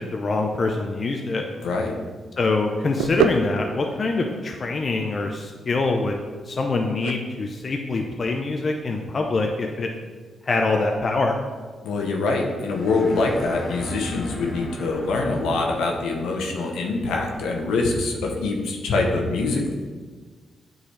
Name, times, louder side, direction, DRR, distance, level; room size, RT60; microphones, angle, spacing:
voice 1, 0.0-1.4 2.4-6.2 6.5-9.9 10.4-11.3, left 3 dB, 50° left, 2 dB, 0.6 m, -24 dB
voice 2, 1.6-1.9 11.8-19.7, left 3 dB, 80° left, 1 dB, 0.9 m, -24 dB
sound 1, 2.2-9.6, right 6 dB, 90° right, 0.3 m, -31 dB
sound 2, 12.6-16.3, left 1 dB, 35° left, 1.1 m, -38 dB
8.3 x 4.0 x 3.3 m, 1.4 s
supercardioid pair, 50°, 0 cm